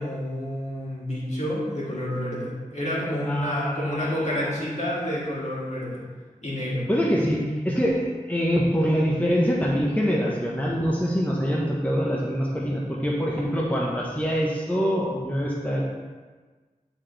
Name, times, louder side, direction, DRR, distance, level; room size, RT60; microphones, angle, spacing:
voice 1, 0.0-6.0 6.4-6.8, equal, 55° left, -7 dB, 2.3 m, -29 dB
voice 2, 3.2-4.9 6.9-15.8, equal, 10° left, -4 dB, 1.0 m, -25 dB
9.8 x 4.2 x 3.3 m, 1.4 s
wide cardioid pair, 40°, 14 cm